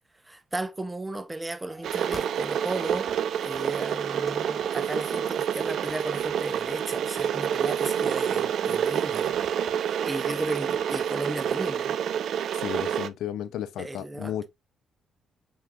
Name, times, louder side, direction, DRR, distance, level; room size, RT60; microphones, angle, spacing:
voice 1, 0.2-3.1 3.4-9.4 9.8-12.0 13.8-14.3, right 2 dB, 20° right, 0.8 m, -35 dB
sound 1, 1.7-11.7, left 1 dB, 15° left, 1.4 m, -50 dB
Water / Boiling, 1.8-13.1, right 9 dB, 70° right, 0.4 m, -28 dB
voice 2, 12.6-14.5, left 10 dB, 75° left, 0.5 m, -33 dB
5.6 x 3.8 x 2.3 m
hypercardioid pair, 50°, 0 cm